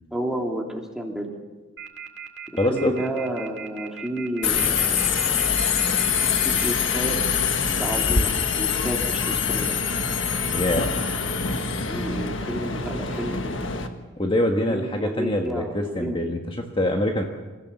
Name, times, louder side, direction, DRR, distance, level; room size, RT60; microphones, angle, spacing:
voice 1, 0.1-1.3 2.7-5.0 6.4-7.2 7.8-9.7 11.9-13.8 14.7-16.2, right 1 dB, 5° right, 0 dB, 2.9 m, -31 dB
sound 1, 1.8-6.7, right 7 dB, 65° right, 2.2 m, -37 dB
voice 2, 2.6-2.9 10.5-10.9 14.2-17.3, left 1 dB, 25° left, 2 dB, 1.5 m, -24 dB
Subway metro underground, 4.4-13.9, left 6 dB, 75° left, 1.6 m, -24 dB
27.5 x 15.0 x 7.3 m, 1.3 s
head